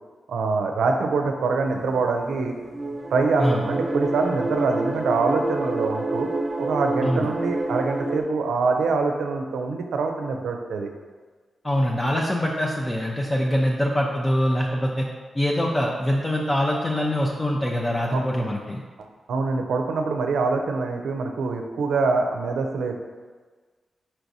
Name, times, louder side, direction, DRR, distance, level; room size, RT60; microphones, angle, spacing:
voice 1, 0.3-2.5 3.1-6.3 6.6-10.9 18.1-18.2 19.0-23.0, right 4 dB, 85° right, 4 dB, 0.4 m, -24 dB
sound 1, 1.7-8.2, right 2 dB, 35° right, 0.8 m, -28 dB
voice 2, 11.6-15.1 15.3-18.8, equal, 25° left, -2 dB, 0.5 m, -24 dB
4.6 x 4.4 x 2.7 m, 1.4 s
cardioid pair, 55°, 0 cm